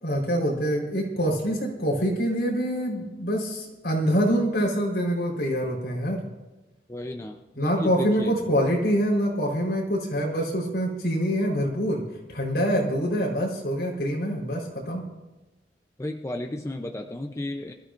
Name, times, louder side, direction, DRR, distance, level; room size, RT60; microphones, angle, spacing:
voice 1, 0.0-6.2 7.6-12.0 12.3-15.1, equal, 75° left, -2 dB, 4.2 m, -25 dB
voice 2, 6.9-8.3 16.0-17.7, left 1 dB, 15° left, 3 dB, 0.6 m, -33 dB
25.0 x 13.5 x 2.6 m, 1.1 s
head